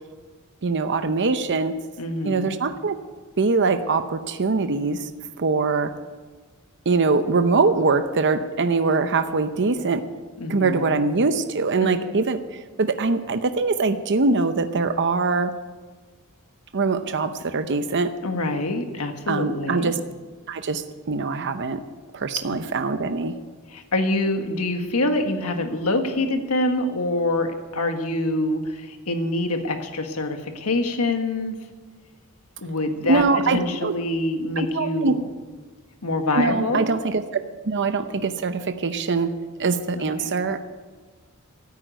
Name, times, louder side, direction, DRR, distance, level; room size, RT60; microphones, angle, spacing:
voice 1, 0.6-1.7 2.2-3.0 3.4-5.1 5.4-5.9 6.9-10.0 10.5-12.4 12.8-15.5 16.7-18.1 19.3-20.0 20.5-21.8 22.1-23.3 33.1-34.0 34.6-35.1 36.3-37.2 37.6-39.3 39.6-40.6, right 3 dB, 55° right, 9 dB, 0.8 m, -23 dB
voice 2, 2.0-2.6 10.4-11.0 11.8-12.0 18.2-19.9 22.5-22.6 23.7-31.6 32.6-35.3 36.0-36.9 39.9-40.3, left 2 dB, 75° left, 5 dB, 1.6 m, -25 dB
13.5 x 9.3 x 9.1 m, 1.4 s
head